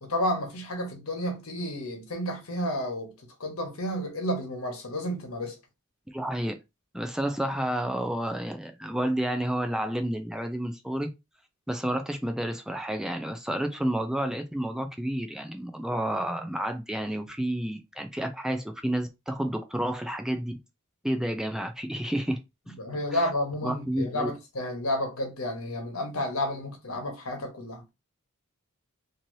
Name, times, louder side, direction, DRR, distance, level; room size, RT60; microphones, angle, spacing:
voice 1, 0.0-3.1 3.4-5.6 22.8-27.8, left 1 dB, 85° left, 1.1 m, -31 dB
voice 2, 6.1-6.6 6.9-11.1 11.7-20.5 21.0-22.4 22.7-22.8 23.1-23.2 23.6-24.3, right 1 dB, 5° right, 0.4 m, -30 dB
3.1 x 2.7 x 2.6 m
head